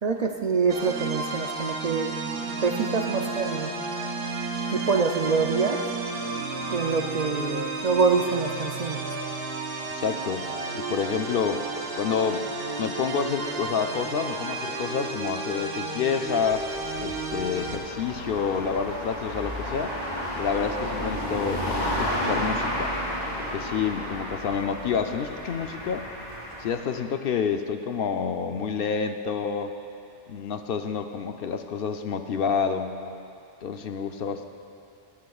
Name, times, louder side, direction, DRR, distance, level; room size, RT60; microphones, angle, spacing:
voice 1, 0.0-2.2 2.6-3.7 4.7-5.8 6.7-9.0, right 5 dB, 50° right, 4 dB, 0.6 m, -25 dB
sound 1, 0.7-17.8, right 3 dB, 65° right, 1.2 m, -32 dB
voice 2, 9.9-11.7 12.0-12.5 12.8-16.7 17.0-20.0 20.4-22.9 23.4-26.1 26.6-29.7 30.3-33.0 33.6-34.4, left 6 dB, 70° left, 7 dB, 0.8 m, -28 dB
sound 2, 16.3-26.9, equal, 45° left, 2.9 m, -32 dB
17.0 x 13.0 x 2.4 m, 2.6 s
omnidirectional pair, 1.0 m